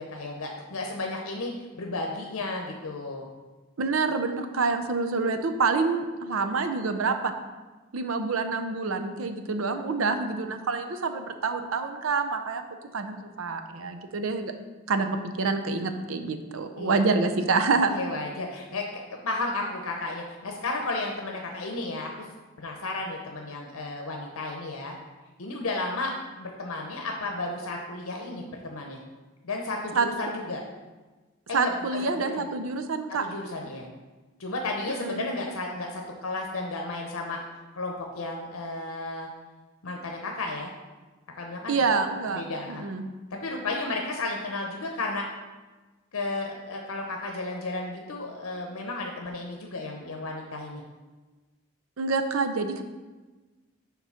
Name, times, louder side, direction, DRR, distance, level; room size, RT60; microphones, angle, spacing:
voice 1, 0.0-3.3 16.8-17.0 17.9-22.3 22.6-25.0 25.4-29.0 29.4-30.6 31.5-31.7 32.1-32.5 33.2-33.9 34.4-37.4 37.7-39.3 39.8-40.7 41.4-41.8 42.3-42.8 43.3-45.3 46.1-50.8, left 2 dB, 90° left, 1 dB, 0.8 m, -33 dB
voice 2, 3.8-7.3 7.9-12.6 12.9-14.5 14.9-17.9 30.0-30.1 31.5-33.3 35.0-35.3 41.7-42.4 42.7-43.0 52.0-52.8, right 4 dB, 80° right, 7 dB, 0.6 m, -27 dB
7.2 x 3.8 x 5.7 m, 1.2 s
head